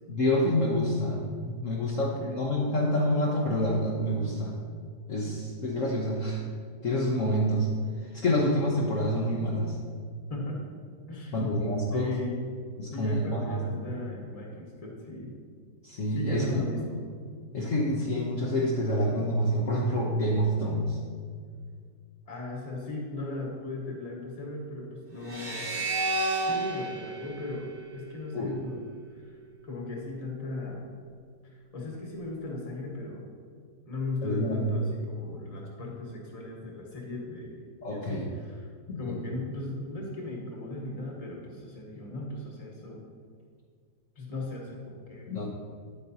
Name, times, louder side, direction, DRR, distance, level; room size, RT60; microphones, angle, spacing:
voice 1, 0.1-4.5 5.1-6.4 6.8-7.7 8.0-9.8 11.3-12.1 12.8-13.8 15.8-16.6 17.5-21.0 28.3-28.5 34.2-34.8 37.8-38.2 38.9-39.2 45.3-45.5, equal, 55° left, -4 dB, 1.2 m, -27 dB
voice 2, 2.0-2.5 10.3-10.7 11.1-11.4 11.9-12.6 12.9-15.3 16.1-17.0 22.3-25.8 26.5-28.8 29.1-29.4 29.6-30.9 31.4-33.3 33.8-37.6 37.9-38.7 39.0-43.0 44.1-45.5, left 2 dB, 25° left, -2 dB, 1.3 m, -37 dB
sound 1, 25.2-28.5, right 2 dB, 40° right, 1.1 m, -32 dB
9.4 x 8.5 x 2.8 m, 2.1 s
omnidirectional pair, 1.8 m